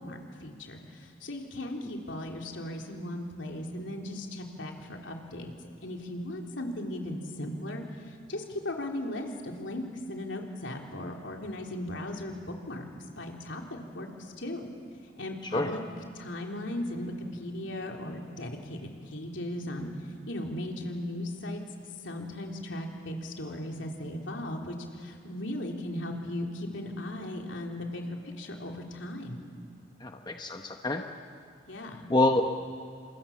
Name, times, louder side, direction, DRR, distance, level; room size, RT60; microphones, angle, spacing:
voice 1, 0.0-5.5 5.8-12.9 13.2-13.6 13.9-14.7 15.2-15.8 16.1-19.9 20.3-21.6 22.0-29.4 31.7-32.1, left 1 dB, 75° left, 1 dB, 3.4 m, -37 dB
voice 2, 30.0-31.0 32.1-32.4, left 2 dB, 20° left, 4 dB, 1.0 m, -26 dB
28.5 x 27.0 x 7.2 m, 2.6 s
head